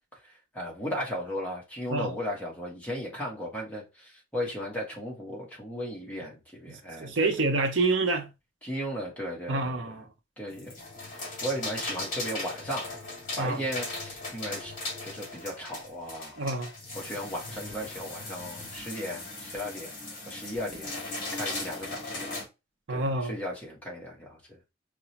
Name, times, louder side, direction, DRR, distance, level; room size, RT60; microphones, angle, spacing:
voice 1, 0.5-7.5 8.6-9.8 10.4-10.8 11.1-12.9 13.4-14.7 15.0-16.4 16.9-20.0 20.3-22.3 22.9-24.6, equal, 5° left, 1.3 m, -36 dB
voice 2, 7.0-8.3 9.5-10.0 13.4-13.6 16.4-16.7 22.9-23.3, right 3 dB, 70° right, 0.7 m, -27 dB
sound 1, 10.5-22.4, left 2 dB, 45° left, 1.8 m, -38 dB
4.8 x 2.3 x 2.8 m
head